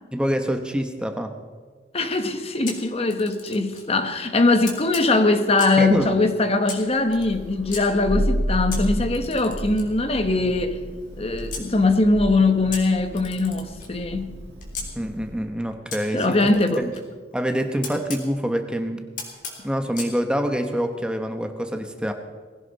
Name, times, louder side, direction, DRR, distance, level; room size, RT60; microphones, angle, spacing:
voice 1, 0.1-1.4 5.8-6.1 15.0-16.9 17.3-19.1 19.6-22.1, equal, 5° right, 6 dB, 0.9 m, -26 dB
voice 2, 1.9-10.8 11.2-14.3 16.1-16.8, left 2 dB, 35° left, 7 dB, 1.2 m, -21 dB
Camera, 2.7-3.9 4.6-5.9 6.6-7.8 8.7-11.7 12.7-14.9 15.9-18.3 19.2-20.1, left 5 dB, 50° left, 3.5 m, -38 dB
Thunder, 7.1-15.5, equal, 85° right, 2.3 m, -31 dB
20.0 x 16.5 x 4.1 m, 1.5 s
head